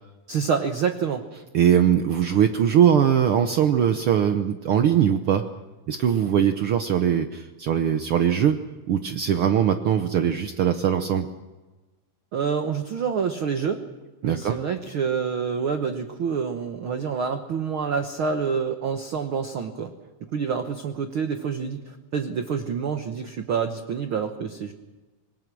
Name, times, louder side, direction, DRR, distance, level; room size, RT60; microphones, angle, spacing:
voice 1, 0.3-1.2 12.3-13.8 14.2-19.9 20.3-24.7, right 6 dB, 60° right, 6 dB, 1.4 m, -27 dB
voice 2, 1.5-5.4 5.9-8.6 8.9-11.3 14.2-14.6, right 9 dB, 75° right, 7 dB, 1.2 m, -21 dB
26.5 x 21.0 x 6.2 m, 1.2 s
omnidirectional pair, 3.8 m